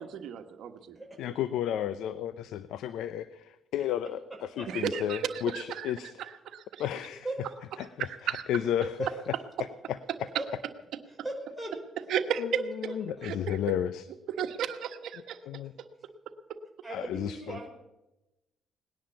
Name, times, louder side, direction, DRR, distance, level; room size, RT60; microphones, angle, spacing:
voice 1, 0.0-1.0 4.7-5.2 5.5-5.8 6.4-6.8 8.3-8.4 12.1-12.4 13.2-13.6 14.4-15.4, right 8 dB, 80° right, 8 dB, 1.3 m, -34 dB
voice 2, 1.2-6.1 6.8-7.3 7.8-8.1 8.5-9.0 9.3-9.4 9.9-10.0 12.4-14.0 15.5-15.7 16.9-17.6, left 10 dB, 85° left, 14 dB, 0.6 m, -32 dB
voice 3, 8.8-9.1 10.2-10.5 11.1-11.7 12.5-12.6 13.2-13.3 16.8-17.7, right 2 dB, ahead, 2 dB, 5.3 m, -37 dB
19.0 x 10.5 x 7.0 m, 0.97 s
cardioid pair, 90°, 0 cm